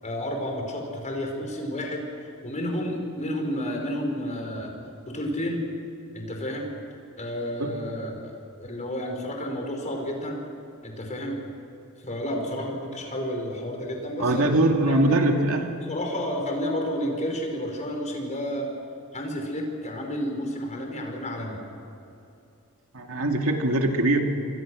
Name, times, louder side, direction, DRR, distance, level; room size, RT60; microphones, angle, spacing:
voice 1, 0.0-2.1 2.4-4.7 5.0-5.6 6.1-6.7 7.1-8.3 8.6-10.4 10.8-11.4 12.0-14.5 14.9-15.2 15.8-18.7 19.1-21.6, equal, 35° left, 2 dB, 5.3 m, -31 dB
voice 2, 14.2-15.7 22.9-24.2, right 1 dB, 70° right, 3 dB, 2.5 m, -22 dB
28.0 x 24.0 x 6.4 m, 2.8 s
head